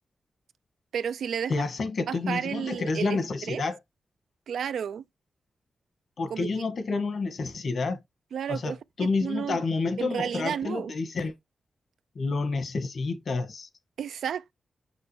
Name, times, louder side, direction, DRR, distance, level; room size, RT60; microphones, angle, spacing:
voice 1, 0.9-1.7 2.1-3.2 3.5-3.6 4.5-5.0 6.3-6.5 8.3-9.6 10.0-10.9 14.0-14.5, right 8 dB, 85° right, 0.4 m, -32 dB
voice 2, 1.5-3.8 6.2-8.0 8.5-11.3 12.1-13.7, left 3 dB, 70° left, 1.8 m, -29 dB
6.2 x 6.2 x 3.3 m
cardioid pair, 55°, 0 cm